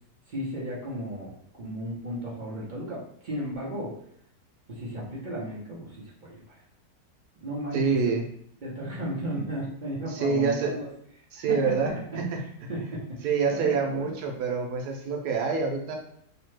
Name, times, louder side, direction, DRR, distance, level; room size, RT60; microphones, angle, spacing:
voice 1, 0.3-4.0 4.7-6.6 7.4-8.2 8.6-10.9 11.3-11.7 12.1-12.2 12.7-14.1, right 1 dB, 50° right, -6 dB, 0.6 m, -35 dB
voice 2, 7.7-8.2 10.0-10.8 11.3-12.9 13.2-16.0, right 5 dB, 85° right, 2 dB, 1.2 m, -27 dB
3.1 x 2.1 x 3.1 m, 0.67 s
omnidirectional pair, 1.7 m